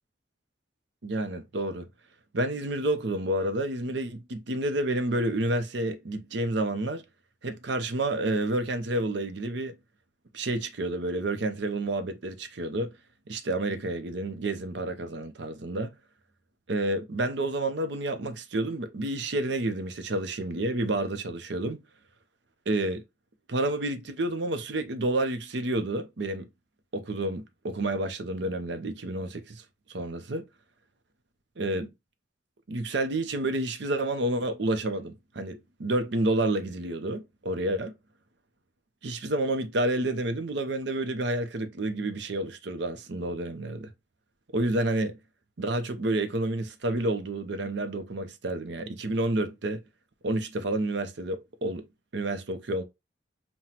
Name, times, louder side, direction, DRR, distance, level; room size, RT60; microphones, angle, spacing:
voice 1, 1.0-1.9 2.3-7.0 7.4-9.8 10.3-12.9 13.3-15.9 16.7-21.8 22.7-23.0 23.5-26.5 26.9-29.6 29.9-30.4 31.6-31.9 32.7-37.9 39.0-43.9 44.5-45.2 45.6-49.8 50.2-51.8 52.1-52.8, right 1 dB, 65° right, 0.6 m, -29 dB
5.7 x 2.2 x 2.9 m
head